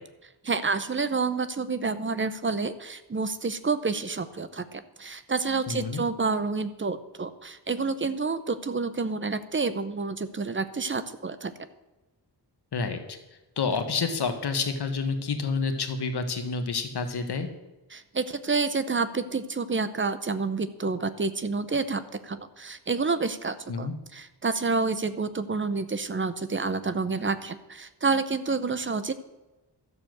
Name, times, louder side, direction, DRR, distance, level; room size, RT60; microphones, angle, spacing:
voice 1, 0.4-11.5 17.9-29.1, right 4 dB, 30° right, 12 dB, 0.7 m, -29 dB
voice 2, 5.7-6.0 12.7-13.2 13.6-17.5 23.7-23.9, left 4 dB, 65° left, 6 dB, 1.5 m, -29 dB
12.5 x 6.9 x 7.9 m, 1.1 s
wide cardioid pair, 160°, 42 cm